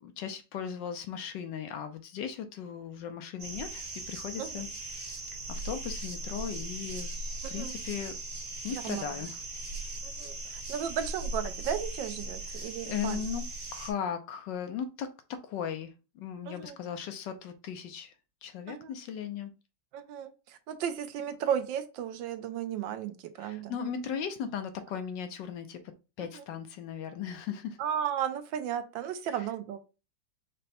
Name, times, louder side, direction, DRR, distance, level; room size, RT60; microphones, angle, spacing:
voice 1, 0.0-4.7 4.9-7.1 7.5-8.2 8.6-9.4 12.5-13.4 13.7-18.1 18.4-19.5 23.4-25.8 26.2-27.8, left 8 dB, 75° left, 8 dB, 1.2 m, -37 dB
sound 1, 3.4-13.9, right 2 dB, 60° right, 1.9 m, -39 dB
voice 2, 7.4-7.7 8.7-9.3 10.0-13.3 16.5-16.8 18.7-18.9 19.9-23.8 26.2-26.4 27.8-29.9, right 9 dB, 80° right, 9 dB, 1.3 m, -35 dB
5.2 x 2.1 x 4.2 m, 0.30 s
omnidirectional pair, 2.1 m